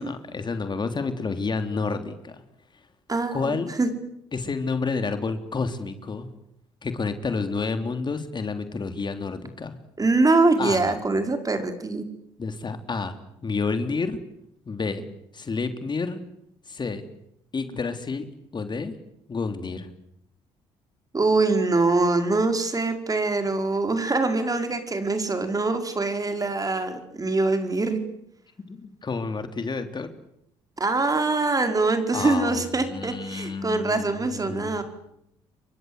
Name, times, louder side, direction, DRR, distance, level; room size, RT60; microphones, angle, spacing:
voice 1, 0.0-2.4 3.3-3.7 4.3-6.3 6.8-9.8 10.6-10.9 12.4-13.2 13.4-14.2 14.7-15.1 15.3-16.2 16.7-17.1 17.5-18.2 18.5-18.9 19.3-19.9 28.7-30.1 32.1-34.8, left 4 dB, 35° left, 8 dB, 3.4 m, -29 dB
voice 2, 3.1-3.9 10.0-12.1 21.1-28.0 30.8-34.8, right 3 dB, 30° right, 7 dB, 5.1 m, -23 dB
30.0 x 24.0 x 8.2 m, 0.78 s
hypercardioid pair, 55°, 13 cm